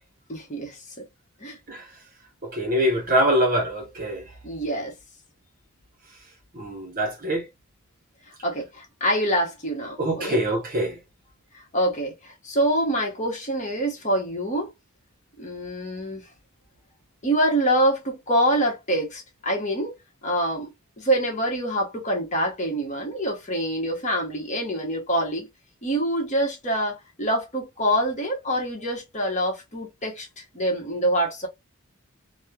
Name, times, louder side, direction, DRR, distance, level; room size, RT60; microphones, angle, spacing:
voice 1, 0.3-1.0 1.4-1.6 4.4-4.9 8.3-10.4 11.5-14.7 15.4-16.3 17.2-19.9 20.2-20.7 21.0-25.5 25.8-31.5, right 1 dB, 35° left, 0.9 m, -26 dB
voice 2, 2.4-4.3 6.5-7.5 10.0-11.0, equal, 40° right, 0.7 m, -24 dB
3.0 x 2.0 x 2.3 m
head